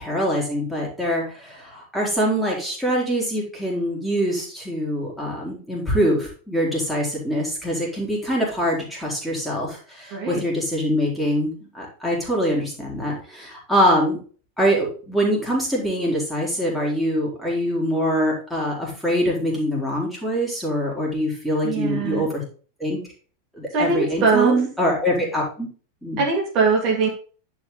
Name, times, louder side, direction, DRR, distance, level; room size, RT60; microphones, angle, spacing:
voice 1, 0.0-14.2 14.6-22.4 22.8-23.0 23.6-25.7 26.0-26.2, equal, ahead, -4 dB, 3.7 m, -24 dB
voice 2, 10.1-10.4 21.6-22.3 23.7-24.6 26.2-27.1, right 4 dB, 40° right, -1 dB, 2.5 m, -21 dB
10.5 x 4.9 x 3.9 m, 0.39 s
figure-of-eight pair, 90°, 0 cm